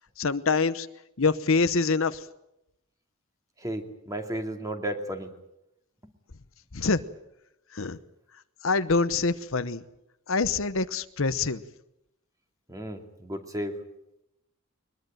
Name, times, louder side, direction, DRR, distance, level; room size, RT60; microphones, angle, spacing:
voice 1, 0.2-0.9 1.2-2.2 6.7-7.0 7.7-8.0 8.6-9.8 10.3-11.6, left 4 dB, 65° left, 12 dB, 0.9 m, -25 dB
voice 2, 3.6-5.3 6.0-6.1 12.7-13.8, right 1 dB, 15° right, 4 dB, 2.5 m, -34 dB
22.5 x 21.5 x 9.1 m, 0.85 s
head